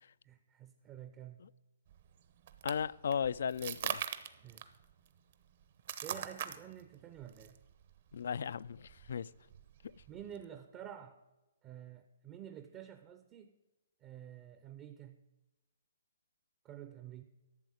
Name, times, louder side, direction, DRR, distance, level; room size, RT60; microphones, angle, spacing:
voice 1, 0.2-1.4 4.4-4.7 6.0-7.6 10.1-11.2 11.6-13.6 14.0-15.2 16.6-17.2, right 10 dB, 20° right, 0.6 m, -50 dB
sound 1, 1.9-10.4, right 10 dB, 45° right, 0.8 m, -44 dB
voice 2, 2.6-4.0 8.1-9.3, left 7 dB, 65° left, 0.3 m, -36 dB
12.0 x 7.3 x 6.4 m
hypercardioid pair, 160°, 0 cm